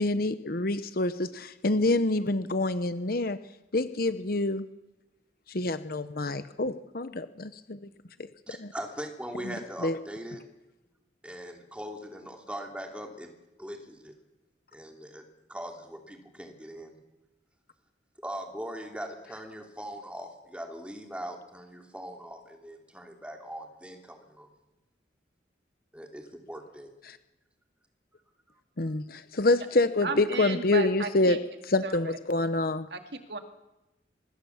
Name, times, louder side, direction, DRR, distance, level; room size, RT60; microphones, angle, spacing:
voice 1, 0.0-3.4 3.7-4.7 5.5-7.8 8.6-8.7 9.8-10.0 28.8-31.4 31.7-32.9, left 2 dB, 55° left, 12 dB, 0.9 m, -27 dB
voice 2, 8.5-10.4 11.2-13.3 13.6-14.1 14.7-15.2 15.5-16.9 18.2-24.5 25.9-26.9, equal, 5° right, 3 dB, 3.0 m, -40 dB
voice 3, 30.0-31.4 31.8-32.2 32.9-33.4, right 4 dB, 60° right, 6 dB, 2.4 m, -34 dB
25.0 x 21.0 x 7.3 m, 0.96 s
head